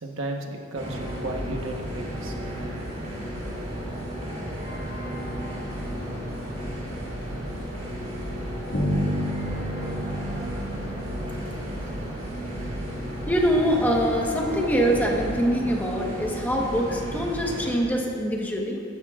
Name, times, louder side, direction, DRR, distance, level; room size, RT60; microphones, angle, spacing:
voice 1, 0.0-2.7, right 2 dB, 80° right, 1 dB, 1.2 m, -34 dB
sound 1, 0.7-17.7, equal, 40° right, 3.0 m, -33 dB
Bass guitar, 8.7-12.5, equal, 75° left, 2.2 m, -30 dB
voice 2, 13.3-18.8, equal, 10° left, -1 dB, 1.2 m, -24 dB
15.0 x 12.0 x 2.4 m, 2.3 s
head